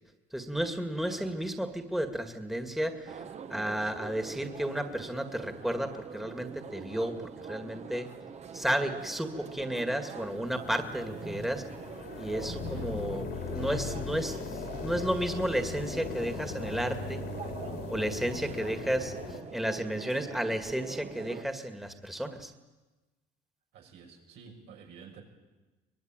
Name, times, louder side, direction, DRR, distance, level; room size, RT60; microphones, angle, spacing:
voice 1, 0.3-3.2 3.5-8.1 8.5-11.6 12.2-14.4 14.8-17.2 17.9-19.1 19.5-22.5, right 1 dB, ahead, 6 dB, 2.0 m, -32 dB
sound 1, 3.1-21.4, right 7 dB, 40° right, 1.4 m, -44 dB
sound 2, 10.2-19.4, left 4 dB, 70° left, 3.5 m, -39 dB
voice 2, 12.5-12.9 18.4-18.9 23.7-25.2, right 6 dB, 85° right, 1 dB, 6.5 m, -51 dB
24.0 x 21.0 x 9.0 m, 1.2 s
cardioid pair, 110°, 17 cm